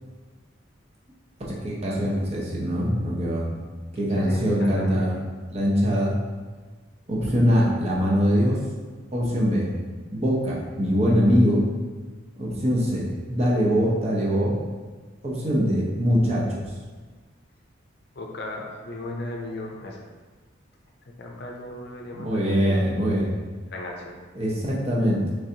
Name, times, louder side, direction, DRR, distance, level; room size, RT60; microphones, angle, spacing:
voice 1, 1.5-3.5 3.9-5.1 5.5-6.1 7.1-8.6 9.1-9.7 10.1-11.6 12.4-14.5 15.2-16.7 22.1-23.3 24.3-25.2, equal, 30° right, -5 dB, 0.7 m, -23 dB
voice 2, 4.2-5.0 18.1-20.1 21.2-22.8 23.7-24.2, left 1 dB, 55° left, 0 dB, 0.5 m, -36 dB
3.9 x 3.3 x 2.8 m, 1.4 s
head